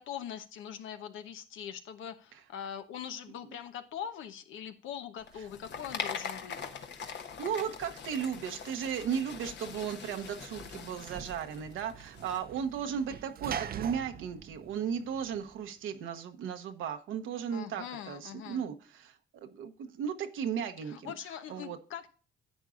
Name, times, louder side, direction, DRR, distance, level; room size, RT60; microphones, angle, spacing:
voice 1, 0.0-6.6 17.5-18.6 20.8-22.1, left 9 dB, 85° left, 8 dB, 1.0 m, -42 dB
sound 1, 5.2-12.4, left 6 dB, 65° left, 1.2 m, -42 dB
voice 2, 7.4-19.1 19.4-21.1 21.5-21.8, right 8 dB, 85° right, 7 dB, 1.1 m, -35 dB
Sliding door / Slam, 9.7-15.6, right 8 dB, 50° right, 0.6 m, -43 dB
11.0 x 8.2 x 2.5 m, 0.38 s
cardioid pair, 90°, 20 cm